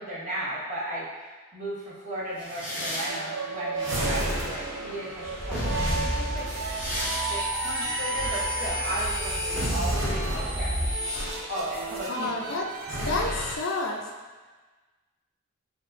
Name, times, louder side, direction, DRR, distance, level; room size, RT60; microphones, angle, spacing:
voice 1, 0.0-6.5 7.3-10.9 11.5-12.5, right 1 dB, 35° right, -8 dB, 1.0 m, -35 dB
sound 1, 2.4-4.8 5.3-12.8, equal, 5° right, 0.9 m, -37 dB
sound 2, 3.1-13.1, right 4 dB, 80° right, 0.3 m, -36 dB
sound 3, 3.8-12.1 12.8-13.6, equal, 60° right, 0.8 m, -30 dB
voice 2, 12.1-12.7 13.0-14.0, left 3 dB, 65° left, 1 dB, 0.5 m, -29 dB
4.5 x 2.9 x 2.5 m, 1.3 s
head